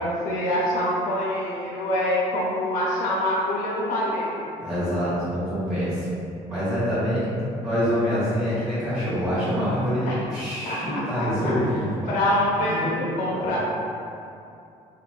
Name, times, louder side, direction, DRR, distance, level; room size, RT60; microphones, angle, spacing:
voice 1, 0.0-4.5 10.0-10.2 10.7-11.5 12.1-13.6, left 1 dB, 75° left, -5 dB, 0.6 m, -25 dB
voice 2, 4.6-6.1 6.5-12.1 12.5-13.6, equal, 5° right, -13 dB, 1.1 m, -26 dB
2.9 x 2.7 x 2.3 m, 2.6 s
cardioid pair, 90°, 14 cm